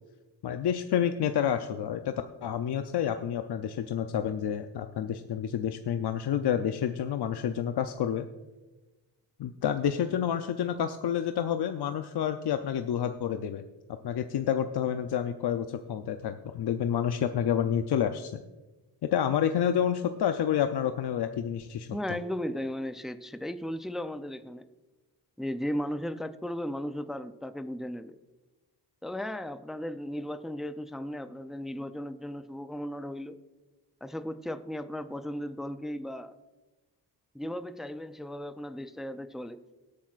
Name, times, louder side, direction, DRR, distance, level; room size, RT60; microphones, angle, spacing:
voice 1, 0.4-2.1 2.4-8.3 9.4-13.6 14.0-18.4 19.1-21.9, left 9 dB, 70° left, 7 dB, 0.6 m, -29 dB
voice 2, 21.9-24.6 25.4-28.2 29.0-33.4 34.0-36.4 37.3-39.6, equal, ahead, 10 dB, 0.4 m, -36 dB
23.0 x 8.6 x 2.5 m, 1.1 s
wide cardioid pair, 130°, 41 cm